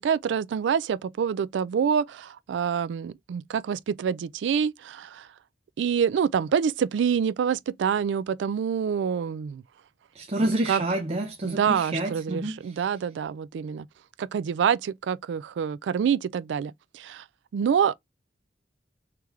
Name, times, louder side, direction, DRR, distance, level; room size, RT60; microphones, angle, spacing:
voice 1, 0.0-5.3 5.8-9.6 10.7-10.8 11.4-13.9 14.2-17.2 17.5-17.9, right 7 dB, 85° right, 0.3 m, -26 dB
voice 2, 10.1-13.0, right 1 dB, 35° right, 0.6 m, -29 dB
3.6 x 3.3 x 3.0 m
head